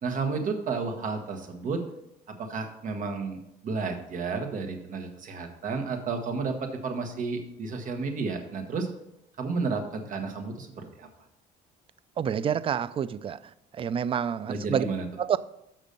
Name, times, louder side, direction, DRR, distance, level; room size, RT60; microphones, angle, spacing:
voice 1, 0.0-1.8 2.3-8.9 9.4-11.1 14.5-15.1, right 4 dB, 50° right, 1.4 m, -32 dB
voice 2, 12.2-13.4 13.8-14.9 15.2-15.4, right 8 dB, 35° right, 0.4 m, -28 dB
6.8 x 6.0 x 5.2 m
cardioid pair, 110°, 17 cm